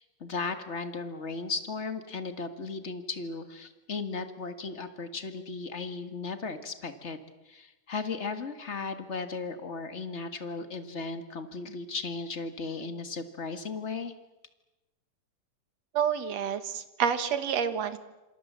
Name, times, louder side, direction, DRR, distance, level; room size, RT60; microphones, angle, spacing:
voice 1, 0.0-7.2 7.4-14.1, left 4 dB, 30° left, 9 dB, 1.3 m, -36 dB
voice 2, 15.9-18.0, right 8 dB, 60° right, 11 dB, 2.6 m, -28 dB
27.0 x 26.5 x 7.5 m, 1.0 s
omnidirectional pair, 3.6 m